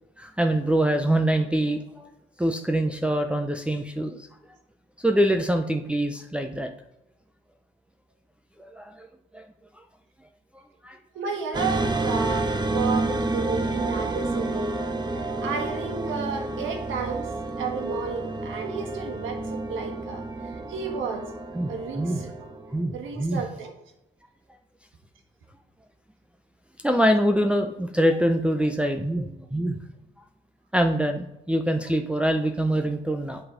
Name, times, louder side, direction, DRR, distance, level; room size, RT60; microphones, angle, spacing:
voice 1, 0.2-2.0 2.4-4.2 5.0-6.7 8.8-9.1 9.3-9.4 10.5-11.0 21.5-22.2 22.7-23.4 26.8-29.8 30.7-33.4, right 1 dB, 5° right, 4 dB, 0.6 m, -24 dB
voice 2, 11.1-14.7 15.1-17.3 17.6-20.2 20.7-21.2 21.7-22.5 22.9-23.7, right 6 dB, 85° right, 3 dB, 1.5 m, -32 dB
sound 1, 11.5-22.8, right 2 dB, 20° right, 0.9 m, -29 dB
7.7 x 4.2 x 4.9 m, 0.92 s
cardioid pair, 90°, 20 cm